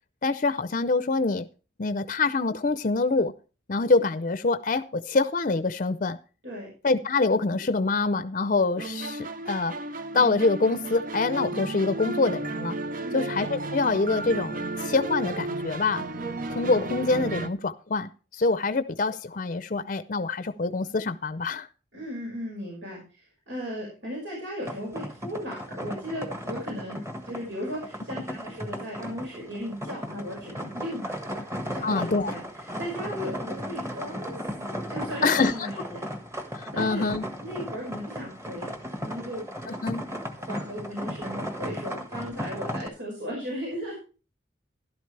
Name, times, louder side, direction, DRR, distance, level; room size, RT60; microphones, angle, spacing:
voice 1, 0.2-1.5 1.8-3.3 3.7-6.2 6.8-9.7 10.1-12.8 13.1-16.0 16.5-21.7 31.8-32.3 35.2-35.7 36.5-37.2 39.8-40.0, left 3 dB, 45° left, 13 dB, 0.6 m, -25 dB
sound 1, 8.8-17.5, right 2 dB, 50° right, 0.8 m, -33 dB
voice 2, 13.0-13.4 21.9-31.4 31.7-36.1 36.7-37.0 37.4-38.7 39.0-39.4 40.4-43.9, equal, 80° right, -3 dB, 5.6 m, -36 dB
sound 2, 24.6-42.9, equal, 15° right, 1.4 m, -36 dB
13.0 x 11.5 x 3.3 m, 0.35 s
head